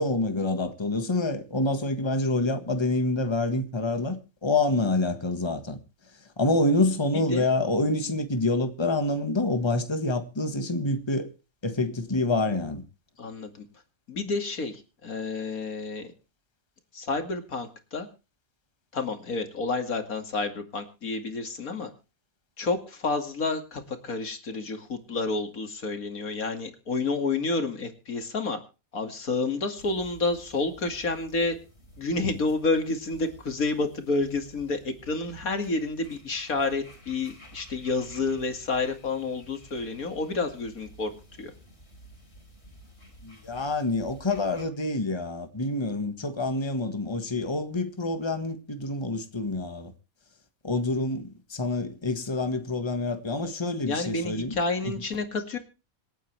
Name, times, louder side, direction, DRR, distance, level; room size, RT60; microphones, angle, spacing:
voice 1, 0.0-5.8 6.4-11.3 11.6-12.8 43.2-49.9 50.6-54.5, left 2 dB, 20° left, 1.7 m, -27 dB
voice 2, 13.2-13.7 14.1-16.1 16.9-18.1 18.9-21.9 22.6-28.6 28.9-31.6 32.0-41.1 41.4-41.5 53.8-55.6, left 3 dB, 85° left, 2.9 m, -29 dB
sound 1, 29.8-44.7, equal, 50° left, 4.9 m, -52 dB
26.5 x 9.2 x 3.4 m
omnidirectional pair, 1.5 m